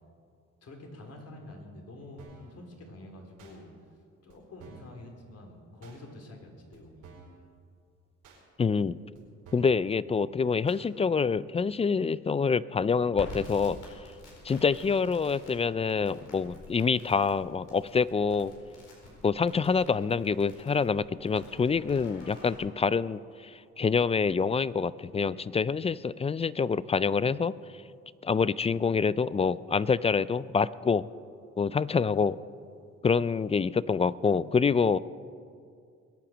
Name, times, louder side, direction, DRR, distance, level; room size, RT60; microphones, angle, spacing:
voice 1, 0.6-3.7 4.2-7.1, left 1 dB, 55° left, 2 dB, 3.3 m, -47 dB
sound 1, 2.2-2.5 3.4-3.6 4.3-4.4 4.6-5.0 5.8-6.0 6.7-6.8 7.0-7.4 8.2-8.4 9.1-9.2 9.5-9.8 10.7-10.8 11.6-11.7, right 5 dB, 90° right, 4.3 m, -52 dB
voice 2, 8.6-9.0 9.5-13.8 14.4-18.5 19.2-27.5 28.2-31.1 31.6-32.4 33.0-35.0, left 5 dB, 20° left, 19 dB, 0.3 m, -26 dB
Crackle, 13.1-22.6, left 2 dB, 85° left, 4.5 m, -49 dB
21.5 x 8.9 x 6.1 m, 2.3 s
cardioid pair, 90°, 30 cm